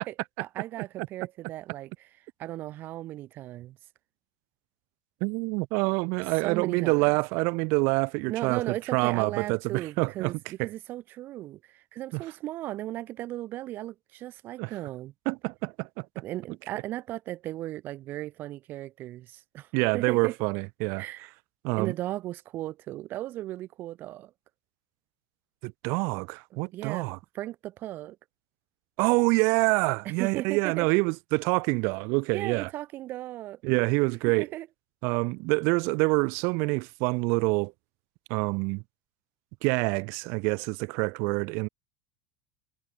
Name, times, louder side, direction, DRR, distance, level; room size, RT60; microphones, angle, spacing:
voice 1, 0.1-2.1 2.4-3.8 6.4-7.1 8.3-15.1 16.1-20.3 21.0-21.3 21.8-24.3 26.7-27.1 27.3-28.2 30.0-30.9 32.3-33.6 34.4-34.7, right 15 dB, 50° right, 1.2 m, -36 dB
voice 2, 5.2-10.3 10.6-10.7 12.1-12.2 14.6-14.7 15.3-16.1 19.7-21.0 21.6-21.9 25.6-27.2 29.0-32.7 33.6-34.5 35.0-37.7 38.3-38.8 39.6-41.7, right 30 dB, 65° right, 0.7 m, -26 dB
supercardioid pair, 110°, 4 cm